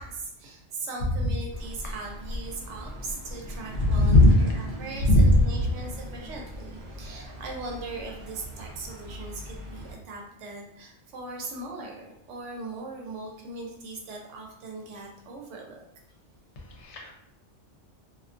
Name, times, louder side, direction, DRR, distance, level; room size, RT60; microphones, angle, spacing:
voice 1, 0.0-15.8, right 3 dB, 80° right, 0 dB, 0.9 m, -40 dB
sound 1, 1.5-9.9, equal, 50° right, 0.5 m, -40 dB
voice 2, 3.8-4.4 5.0-5.4 16.6-17.1, left 1 dB, 75° left, 0 dB, 0.9 m, -19 dB
2.3 x 2.2 x 2.4 m, 0.76 s
omnidirectional pair, 1.2 m